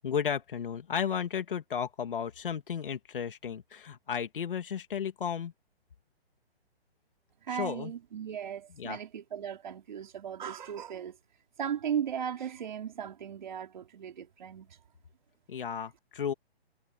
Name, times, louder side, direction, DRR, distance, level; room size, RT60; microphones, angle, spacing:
voice 1, 0.0-5.5 7.5-7.9 8.7-9.0 15.5-16.3, left 7 dB, 55° left, 2.8 m, -34 dB
voice 2, 7.5-11.2 11.6-14.7, right 8 dB, 45° right, 4.1 m, -36 dB
hypercardioid pair, 175°, 32 cm